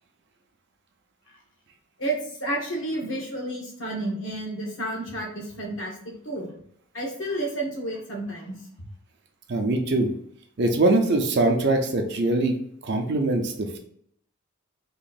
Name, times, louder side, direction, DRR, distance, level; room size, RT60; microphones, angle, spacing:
voice 1, 2.0-6.5 6.9-8.6, right 1 dB, 60° left, -1 dB, 1.0 m, -31 dB
voice 2, 9.5-10.1 10.6-12.6 12.8-13.8, right 2 dB, 50° right, 4 dB, 0.5 m, -22 dB
3.0 x 2.5 x 4.0 m, 0.68 s
head